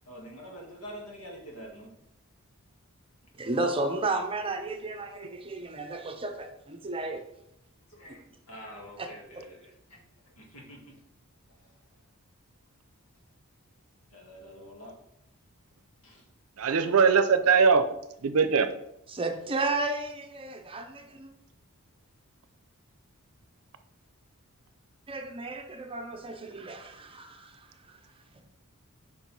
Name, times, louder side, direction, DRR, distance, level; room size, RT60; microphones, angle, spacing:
voice 1, 0.1-1.9 7.9-10.0 10.3-11.0 11.5-11.7 14.1-14.9 16.0-16.2, equal, 80° left, -1 dB, 1.9 m, -46 dB
voice 2, 3.4-7.2 8.1-8.2 9.0-9.1 9.3-9.4 19.1-21.3 25.1-27.6 27.9-28.0, right 2 dB, 25° right, 5 dB, 0.7 m, -33 dB
voice 3, 16.6-17.9 18.2-18.7, right 5 dB, 75° right, 11 dB, 0.6 m, -21 dB
5.2 x 4.6 x 5.3 m, 0.79 s
head